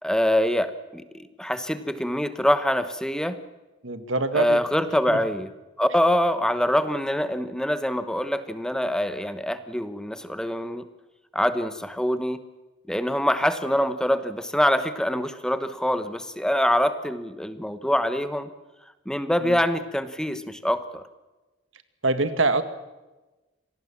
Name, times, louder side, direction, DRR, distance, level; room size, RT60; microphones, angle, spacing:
voice 1, 0.0-3.4 4.3-5.5 5.8-10.8 11.3-12.4 12.9-18.5 19.1-21.0, equal, 5° left, 11 dB, 1.1 m, -24 dB
voice 2, 3.8-4.6 5.1-5.2 19.4-19.6 22.0-22.6, right 3 dB, 80° right, 11 dB, 1.9 m, -24 dB
26.5 x 18.5 x 7.3 m, 1.1 s
head